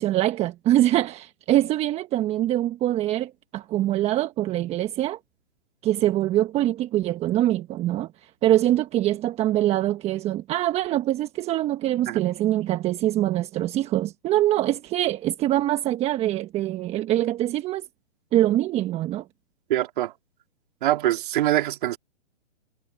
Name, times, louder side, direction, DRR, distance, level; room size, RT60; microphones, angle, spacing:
voice 1, 0.0-5.2 5.8-8.1 8.4-17.8 18.3-19.2, right 14 dB, 15° right, 1.4 m, -24 dB
voice 2, 19.7-20.1 20.8-22.0, right 14 dB, 45° right, 3.7 m, -23 dB
hypercardioid pair, 140°, 35 cm